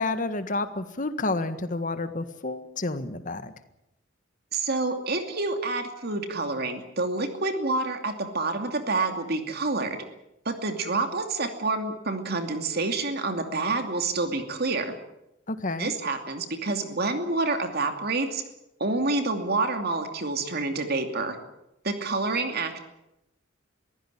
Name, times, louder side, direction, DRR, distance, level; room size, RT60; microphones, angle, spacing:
voice 1, 0.0-3.5 15.5-15.9, left 2 dB, 45° left, 10 dB, 1.7 m, -30 dB
voice 2, 4.5-10.0 10.4-15.0 15.8-18.4 18.8-21.4 21.8-22.8, right 3 dB, 55° right, 6 dB, 2.6 m, -28 dB
23.0 x 15.5 x 10.0 m, 0.88 s
head